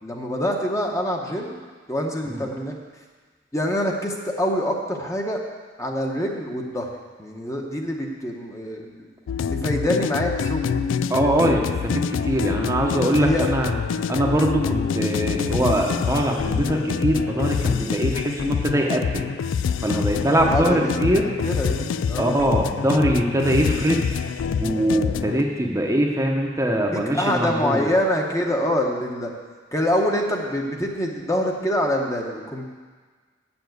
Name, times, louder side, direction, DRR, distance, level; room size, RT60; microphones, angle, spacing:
voice 1, 0.0-1.5 1.9-2.8 3.5-5.4 5.8-6.9 7.2-9.1 9.5-10.8 13.2-13.5 20.5-21.0 21.4-22.4 26.9-29.3 29.7-32.6, equal, 15° left, 0 dB, 1.0 m, -25 dB
sound 1, 9.3-25.4, left 6 dB, 80° left, 0.3 m, -26 dB
voice 2, 11.1-13.7 14.1-19.2 19.8-21.3 22.2-24.1 24.6-27.8, right 1 dB, 15° right, 0 dB, 0.9 m, -22 dB
8.1 x 7.1 x 7.9 m, 1.5 s
head